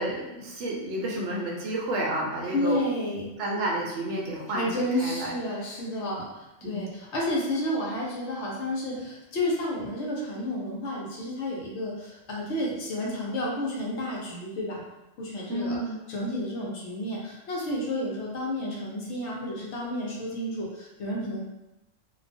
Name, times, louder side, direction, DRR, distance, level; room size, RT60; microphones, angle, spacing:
voice 1, 0.0-2.8 3.4-5.3 6.6-6.8 15.5-16.1, right 1 dB, 70° right, -2 dB, 0.8 m, -30 dB
voice 2, 2.5-3.3 4.5-14.8 15.2-15.8 16.1-21.4, left 1 dB, 70° left, -3 dB, 0.9 m, -31 dB
2.3 x 2.3 x 2.5 m, 0.96 s
omnidirectional pair, 1.3 m